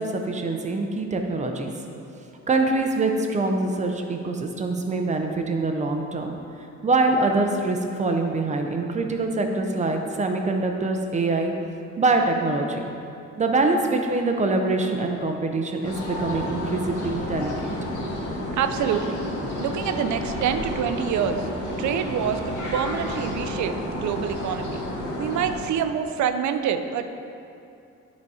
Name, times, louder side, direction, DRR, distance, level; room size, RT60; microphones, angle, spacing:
voice 1, 0.0-1.7 2.5-6.4 6.8-11.5 12.0-12.8 13.4-17.5, right 3 dB, 25° right, 4 dB, 0.5 m, -24 dB
sound 1, 15.8-25.6, left 1 dB, 85° left, 1.7 m, -31 dB
voice 2, 18.5-19.2 19.6-21.5 21.8-24.8 25.2-27.0, right 8 dB, 70° right, 9 dB, 0.5 m, -26 dB
11.5 x 4.1 x 4.8 m, 2.6 s
cardioid pair, 180°, 30 cm